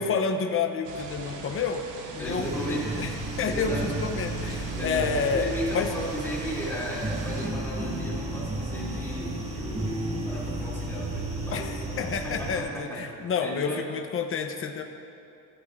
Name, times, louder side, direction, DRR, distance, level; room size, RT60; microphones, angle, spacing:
voice 1, 0.0-1.8 2.1-3.1 3.4-5.5 5.7-5.9 11.5-14.8, left 5 dB, 30° left, 4 dB, 1.1 m, -29 dB
sound 1, 0.8-7.5, right 5 dB, 75° right, 2.8 m, -39 dB
voice 2, 2.2-3.0 3.5-4.0 4.7-13.9, equal, 5° left, -7 dB, 4.5 m, -35 dB
sound 2, 2.2-12.6, right 1 dB, 15° right, 1.9 m, -33 dB
24.0 x 15.0 x 3.8 m, 2.7 s
cardioid pair, 160°, 42 cm